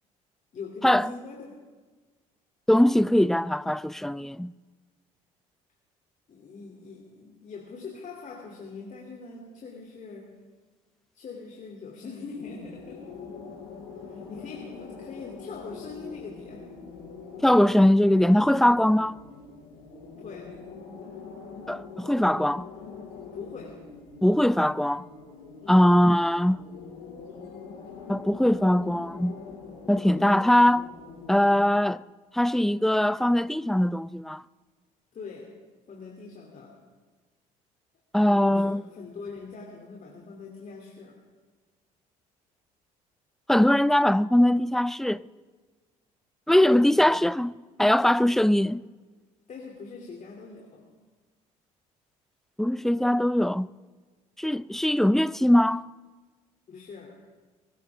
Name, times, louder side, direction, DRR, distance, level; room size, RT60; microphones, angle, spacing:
voice 1, 0.5-1.6 6.3-10.3 11.1-13.1 14.1-16.7 20.1-20.6 23.3-23.8 25.6-26.0 30.0-30.4 35.1-35.5 35.9-36.8 38.3-41.2 46.6-47.2 49.5-50.9 56.7-57.2, left 4 dB, 45° left, 2.9 m, -42 dB
voice 2, 2.7-4.5 17.4-19.2 21.7-22.7 24.2-25.1 25.7-26.6 28.1-29.4 29.9-30.9 31.3-32.0 32.3-34.4 38.1-38.8 43.5-45.3 46.5-47.5 47.8-48.8 52.6-53.7 54.4-55.8, left 1 dB, ahead, 0.4 m, -21 dB
sound 1, 12.3-31.6, left 5 dB, 70° left, 5.3 m, -44 dB
23.5 x 15.5 x 3.6 m
hypercardioid pair, 55°, 18 cm